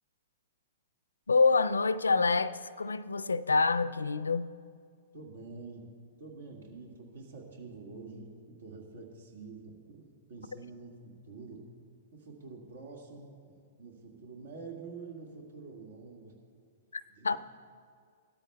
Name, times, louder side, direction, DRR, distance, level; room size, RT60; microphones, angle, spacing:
voice 1, 1.3-4.5 16.9-17.4, left 4 dB, 80° left, 0.4 m, -27 dB
voice 2, 5.1-5.9 6.2-11.8 12.1-16.4 17.1-17.4, right 4 dB, 65° right, 1.8 m, -47 dB
17.5 x 13.0 x 2.3 m
figure-of-eight pair, 110°, 0 cm